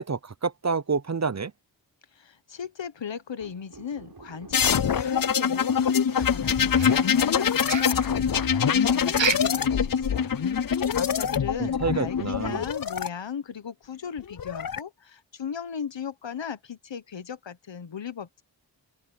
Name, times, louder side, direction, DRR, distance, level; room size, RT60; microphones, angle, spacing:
voice 1, 0.0-1.5 11.6-12.6, right 5 dB, 40° right, 0.8 m, -28 dB
voice 2, 2.1-10.3 10.9-18.4, left 7 dB, 80° left, 1.2 m, -37 dB
sound 1, 3.4-11.7, right 4 dB, 55° right, 6.1 m, -48 dB
sound 2, 4.5-13.1 14.2-14.8, left 7 dB, 50° left, 0.6 m, -24 dB
sound 3, 6.7-7.4 7.6-8.1 9.1-9.6 10.0-10.1 10.5-10.6 11.1-11.2, right 8 dB, 85° right, 1.0 m, -30 dB
open air
wide cardioid pair, 80°, 44 cm